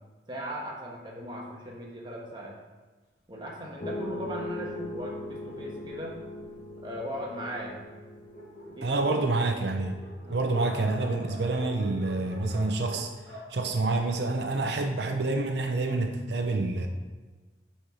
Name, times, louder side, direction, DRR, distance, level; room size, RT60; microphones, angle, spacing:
voice 1, 0.3-2.5 3.3-6.2 6.8-7.8 8.7-9.4 10.2-10.4, equal, 25° right, -2 dB, 1.3 m, -38 dB
Dog, 3.8-6.8 7.5-7.6 7.9-8.0 8.2-14.6, equal, 70° left, 2.4 m, -46 dB
sound 1, 3.8-9.0, left 1 dB, 45° left, 0.9 m, -40 dB
voice 2, 8.8-10.0 10.3-13.1 13.5-16.9, right 2 dB, 65° right, 5 dB, 0.6 m, -27 dB
7.7 x 4.4 x 4.9 m, 1.3 s
head